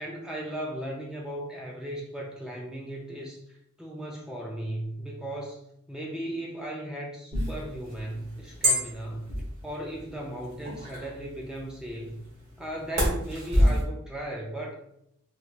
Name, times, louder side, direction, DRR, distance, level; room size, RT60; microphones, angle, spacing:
voice 1, 0.0-5.6 5.9-9.3 9.6-12.2 12.6-14.7, right 1 dB, 5° right, -2 dB, 0.3 m, -36 dB
sound 1, 7.3-13.8, equal, 45° right, 1.4 m, -29 dB
3.3 x 3.0 x 2.3 m, 0.77 s
head